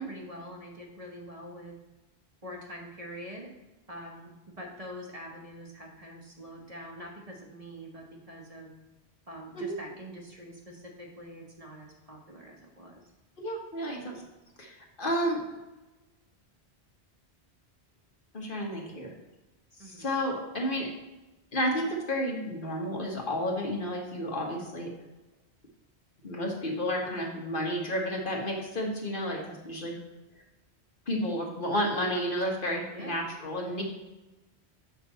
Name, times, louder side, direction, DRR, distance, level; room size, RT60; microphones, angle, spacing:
voice 1, 0.0-1.8 2.4-3.5 3.9-4.3 4.6-8.7 9.3-13.0 19.8-20.0 29.1-29.5 32.9-33.1, equal, 35° right, 0 dB, 1.1 m, -44 dB
voice 2, 13.4-14.2 14.6-15.4 18.3-19.1 19.8-20.9 21.5-24.9 26.2-30.0 31.1-33.8, equal, 55° left, -1 dB, 1.4 m, -31 dB
7.1 x 5.3 x 4.0 m, 1.1 s
omnidirectional pair, 1.1 m